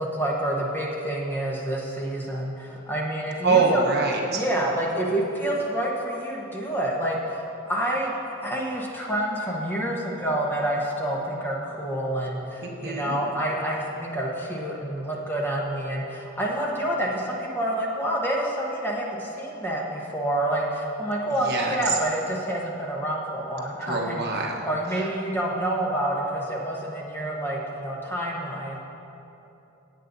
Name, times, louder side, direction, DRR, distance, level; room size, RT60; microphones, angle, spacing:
voice 1, 0.0-3.8 4.3-8.1 8.4-24.2 24.6-28.8, right 1 dB, 10° left, -3 dB, 1.0 m, -28 dB
voice 2, 3.4-4.4 12.6-13.2 21.4-22.0 23.9-24.5 25.0-25.1, right 4 dB, 50° right, -1 dB, 1.1 m, -24 dB
17.5 x 8.4 x 2.7 m, 3.0 s
head